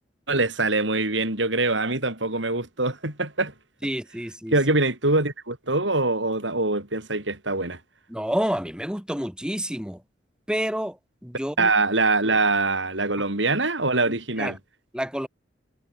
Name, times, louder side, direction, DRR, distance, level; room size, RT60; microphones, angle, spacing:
voice 1, 0.3-3.5 4.5-7.8 11.6-14.6, right 2 dB, 75° right, 6.2 m, -23 dB
voice 2, 3.8-4.6 8.1-10.0 10.5-11.7 14.1-14.6 14.9-15.3, equal, 5° right, 7.1 m, -29 dB
head